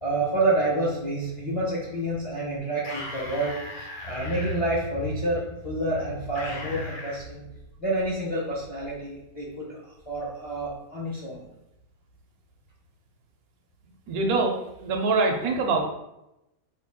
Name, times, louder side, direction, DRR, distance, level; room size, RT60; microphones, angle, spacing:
voice 1, 0.0-7.4 7.8-11.4, right 1 dB, 35° left, -6 dB, 0.5 m, -28 dB
sound 1, 2.8-4.6 6.4-7.2, left 2 dB, 70° left, 1.2 m, -38 dB
voice 2, 14.1-14.6 14.8-15.8, right 3 dB, 75° right, 2 dB, 1.1 m, -24 dB
3.6 x 2.3 x 3.5 m, 0.89 s
omnidirectional pair, 1.6 m